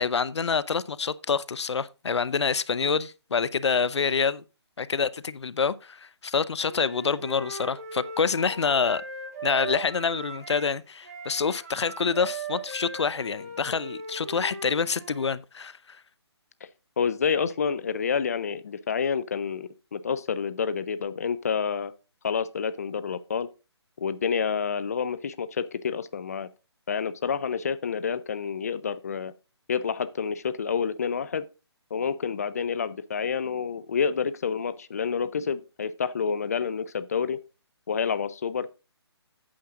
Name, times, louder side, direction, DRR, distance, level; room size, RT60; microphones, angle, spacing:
voice 1, 0.0-4.4 4.8-9.0 9.4-16.0, left 5 dB, 75° left, 0.6 m, -27 dB
Wind instrument woodwind instrument, 6.6-10.7 11.0-15.3, right 3 dB, 35° right, 2.6 m, -39 dB
voice 2, 17.0-21.9 22.2-23.5 24.0-26.5 26.9-29.3 29.7-31.5 31.9-37.4 37.9-38.7, left 6 dB, 35° left, 0.5 m, -28 dB
8.7 x 7.3 x 3.7 m
hypercardioid pair, 170°, 14 cm